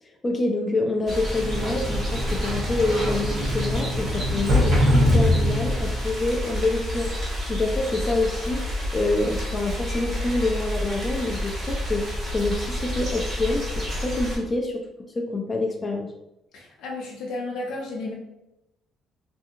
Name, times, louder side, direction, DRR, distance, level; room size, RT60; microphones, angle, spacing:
voice 1, 0.2-7.1 7.5-8.6 8.9-12.0 12.3-14.9 15.2-16.1, left 2 dB, 20° left, 2 dB, 0.4 m, -26 dB
sound 1, 1.1-14.4, equal, 40° right, 1.2 m, -30 dB
Sliding door, 1.3-6.0, left 1 dB, 75° right, 1.0 m, -23 dB
voice 2, 16.5-18.1, left 2 dB, 80° left, -2 dB, 0.6 m, -33 dB
2.7 x 2.6 x 2.5 m, 0.89 s
cardioid pair, 105°, 0 cm